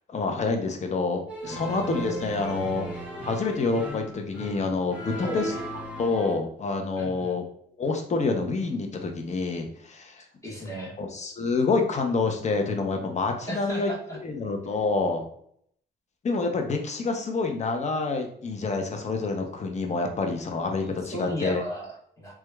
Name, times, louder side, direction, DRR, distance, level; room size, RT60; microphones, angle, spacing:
voice 1, 0.1-2.9 3.2-5.5 6.0-7.4 7.8-10.2 11.0-13.9 14.2-15.2 16.2-21.6, left 3 dB, 40° left, 4 dB, 0.5 m, -27 dB
sound 1, 1.3-6.3, equal, 5° right, 0.8 m, -36 dB
voice 2, 1.4-1.8 5.1-5.5 7.0-7.3 10.4-11.0 13.5-14.2 20.8-22.3, right 1 dB, 15° left, -3 dB, 1.2 m, -35 dB
2.8 x 2.2 x 2.2 m, 0.65 s
cardioid pair, 85°, 19 cm